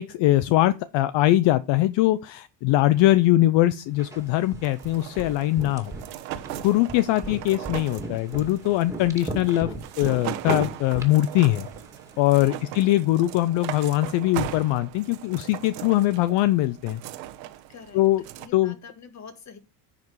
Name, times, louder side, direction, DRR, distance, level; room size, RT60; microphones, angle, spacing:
voice 1, 0.0-5.9 6.6-11.7 12.2-17.0 17.9-18.2 18.5-18.7, left 15 dB, 65° left, 0.7 m, -22 dB
sound 1, 4.0-12.2, right 1 dB, 5° right, 2.3 m, -38 dB
sound 2, 4.6-18.5, right 13 dB, 85° right, 1.2 m, -38 dB
voice 2, 17.7-19.6, left 5 dB, 35° left, 1.8 m, -46 dB
10.5 x 5.0 x 4.7 m
cardioid pair, 115°, 49 cm